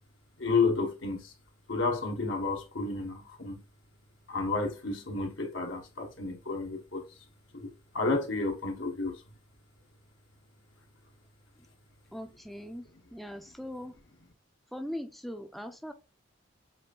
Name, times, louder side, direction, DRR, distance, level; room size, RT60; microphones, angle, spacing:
voice 1, 0.4-1.3 1.7-3.6 4.3-7.1 7.5-9.2, left 3 dB, 70° left, 1.2 m, -31 dB
voice 2, 12.1-14.0 14.7-15.9, equal, ahead, 0.6 m, -40 dB
7.7 x 2.6 x 2.4 m
head